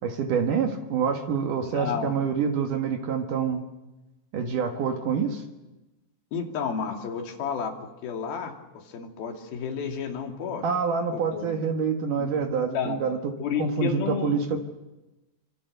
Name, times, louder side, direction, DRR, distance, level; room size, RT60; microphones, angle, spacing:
voice 1, 0.0-3.6 4.3-5.4 10.6-14.6, right 6 dB, 60° right, 4 dB, 2.2 m, -27 dB
voice 2, 1.6-2.1 6.3-7.7 8.0-8.5 8.9-10.7 11.1-11.5 12.2-13.0 13.4-14.4, left 6 dB, 55° left, 2 dB, 3.9 m, -31 dB
26.0 x 25.5 x 6.8 m, 1.0 s
omnidirectional pair, 5.9 m